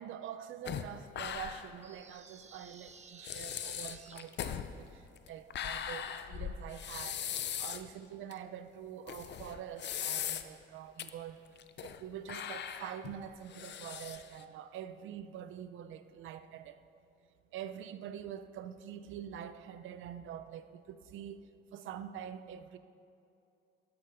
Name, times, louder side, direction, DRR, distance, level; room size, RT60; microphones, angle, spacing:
voice 1, 0.0-11.4 11.8-16.8 17.5-22.8, right 9 dB, 80° right, 11 dB, 0.7 m, -45 dB
sound 1, 0.7-1.8 2.1-2.2 2.9-3.0 3.2-7.9 8.3-8.4 9.1-10.6 11.0-11.1 11.6-12.0 12.3-14.4, left 9 dB, 60° left, 0.7 m, -39 dB
sound 2, 1.8-4.3, right 5 dB, 35° right, 1.1 m, -55 dB
12.5 x 12.0 x 5.1 m, 2.6 s
cardioid pair, 90°, 20 cm